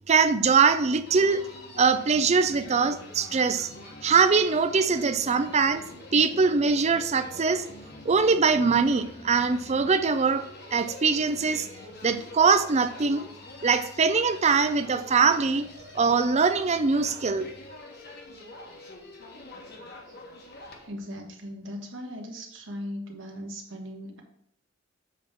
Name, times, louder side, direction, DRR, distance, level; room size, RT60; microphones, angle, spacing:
voice 1, 0.1-1.4 1.8-3.7 4.0-5.8 6.1-7.6 8.1-10.4 10.7-11.7 12.0-13.3 13.6-15.7 16.0-17.5, right 5 dB, 35° right, 10 dB, 0.5 m, -22 dB
Human voice, 1.1-20.9, left 2 dB, 50° left, 1.3 m, -45 dB
voice 2, 20.8-24.2, equal, 65° right, 2 dB, 1.4 m, -38 dB
7.3 x 3.6 x 5.8 m, 0.70 s
head